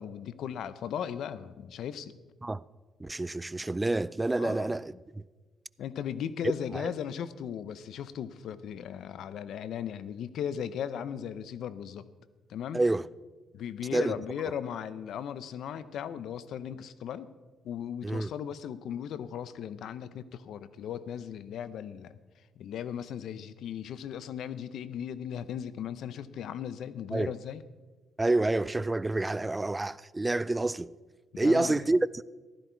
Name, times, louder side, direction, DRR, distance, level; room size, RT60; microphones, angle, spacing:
voice 1, 0.0-2.2 4.4-4.7 5.8-12.0 12.5-12.8 13.5-17.3 17.6-22.2 22.6-27.6 31.3-31.9, left 9 dB, 75° left, 0.7 m, -37 dB
voice 2, 3.0-5.2 6.7-6.9 12.7-13.1 13.9-14.1 18.0-18.3 27.1-27.3 28.2-30.9 31.4-32.2, right 2 dB, 15° right, 0.3 m, -28 dB
14.5 x 12.5 x 4.6 m
cardioid pair, 90°, 0 cm